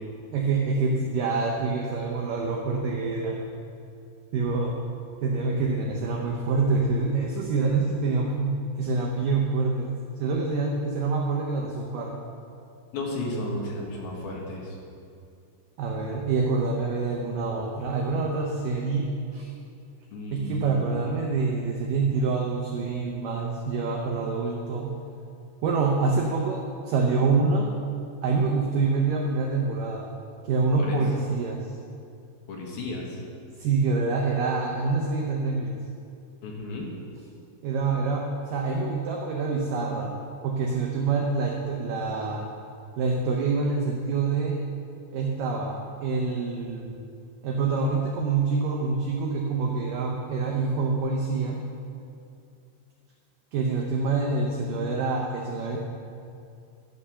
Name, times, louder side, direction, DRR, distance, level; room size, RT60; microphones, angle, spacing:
voice 1, 0.3-3.4 4.3-4.8 5.2-9.9 10.2-12.2 15.8-19.5 20.3-25.0 25.6-27.7 28.2-30.1 30.4-31.7 33.6-35.7 37.6-40.1 40.4-42.4 43.0-44.6 45.1-47.0 47.4-51.6 53.5-55.8, right 4 dB, 90° right, 0 dB, 1.9 m, -26 dB
voice 2, 12.9-14.6 20.1-21.0 30.8-31.0 32.5-33.0 36.4-36.9, left 1 dB, 65° left, -2 dB, 3.0 m, -33 dB
12.0 x 5.5 x 6.9 m, 2.5 s
omnidirectional pair, 5.0 m